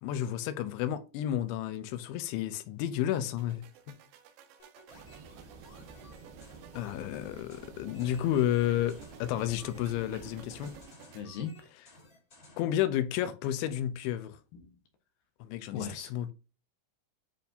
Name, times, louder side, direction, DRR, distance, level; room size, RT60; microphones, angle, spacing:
voice 1, 0.0-3.6 6.7-10.7 12.6-14.4 15.4-16.3, left 11 dB, 90° left, 3.0 m, -31 dB
sound 1, 3.2-11.2, right 9 dB, 85° right, 3.0 m, -54 dB
sound 2, 4.6-12.8, left 2 dB, 30° left, 1.7 m, -57 dB
sound 3, 4.9-10.9, right 4 dB, 65° right, 3.2 m, -51 dB
voice 2, 11.1-11.5 14.5-14.8 15.7-16.1, left 7 dB, 70° left, 2.3 m, -38 dB
9.9 x 4.2 x 2.7 m
omnidirectional pair, 5.3 m